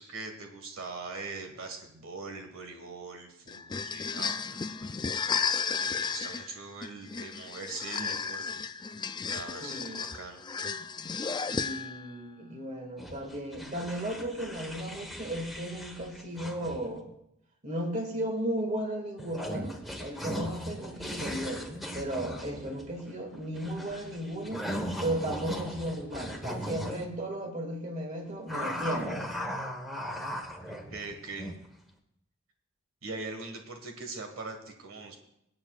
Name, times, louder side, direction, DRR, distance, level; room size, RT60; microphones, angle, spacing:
voice 1, 0.0-5.1 5.9-8.6 9.3-10.4 30.7-31.5 33.0-35.2, right 3 dB, 85° right, 4 dB, 1.6 m, -42 dB
sound 1, 3.5-12.1, left 5 dB, 20° left, 0.3 m, -33 dB
voice 2, 9.6-10.0 11.5-17.1 17.6-21.7 21.9-24.7 25.0-29.2, right 1 dB, 35° right, 3 dB, 2.0 m, -35 dB
sound 2, 13.0-17.0 19.2-27.0 28.5-31.7, equal, ahead, 1.2 m, -38 dB
23.5 x 8.7 x 2.4 m, 0.79 s
head